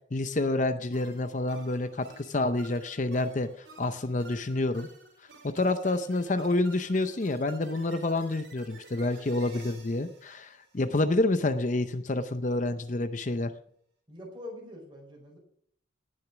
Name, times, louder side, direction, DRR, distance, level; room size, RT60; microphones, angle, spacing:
voice 1, 0.1-4.9 5.4-13.5, left 2 dB, 40° left, 9 dB, 0.6 m, -28 dB
sound 1, 0.9-11.3, right 3 dB, 65° right, 3.9 m, -53 dB
voice 2, 14.1-15.4, left 1 dB, 25° right, 0 dB, 4.5 m, -44 dB
18.5 x 6.5 x 6.0 m, 0.65 s
head